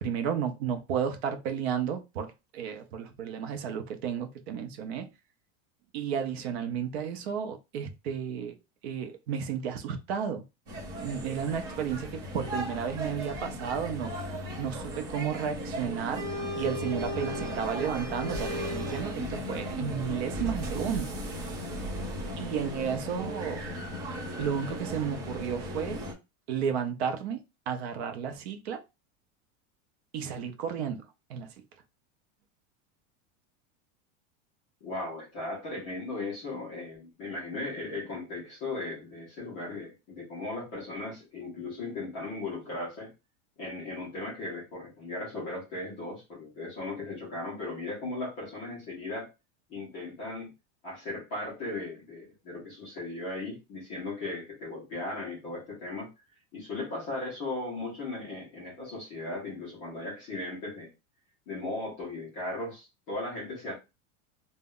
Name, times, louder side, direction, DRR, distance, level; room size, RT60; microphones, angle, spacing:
voice 1, 0.0-5.1 5.9-8.5 8.8-10.4 11.0-14.1 14.6-16.2 16.6-21.1 22.4-23.6 24.4-26.0 26.5-27.4 27.7-28.8 30.1-31.0 31.3-31.5, right 7 dB, 55° right, 0.5 m, -32 dB
sound 1, 10.7-26.1, equal, 35° right, 0.8 m, -36 dB
voice 2, 34.8-43.1 43.6-49.3 49.7-50.5 50.8-56.1 56.5-60.9 61.5-63.8, left 2 dB, 15° left, 0.3 m, -37 dB
2.1 x 2.0 x 3.6 m
supercardioid pair, 180°, 39 cm